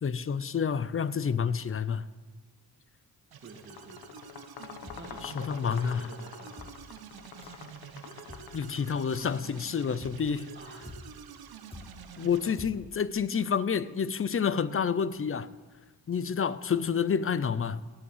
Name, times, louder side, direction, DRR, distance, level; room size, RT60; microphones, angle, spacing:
voice 1, 0.0-2.0 5.2-6.1 8.5-10.5 12.2-15.5 16.1-17.8, left 6 dB, 35° left, 16 dB, 0.7 m, -29 dB
sound 1, 3.3-12.6, right 8 dB, 70° right, 1.2 m, -48 dB
voice 2, 3.4-4.0 5.0-6.7 10.5-11.0 12.1-12.7, right 2 dB, 30° right, -1 dB, 2.0 m, -49 dB
sound 2, 3.6-9.3, left 7 dB, 85° left, 1.3 m, -47 dB
sound 3, 4.9-5.3 5.7-6.1 6.6-7.0 7.4-7.7 8.3-8.7 9.1-9.5 10.0-10.4 10.9-11.3 11.7-12.1 12.6-13.0, left 2 dB, 15° left, 1.3 m, -49 dB
16.5 x 8.7 x 7.4 m, 1.3 s
cardioid pair, 90°, 38 cm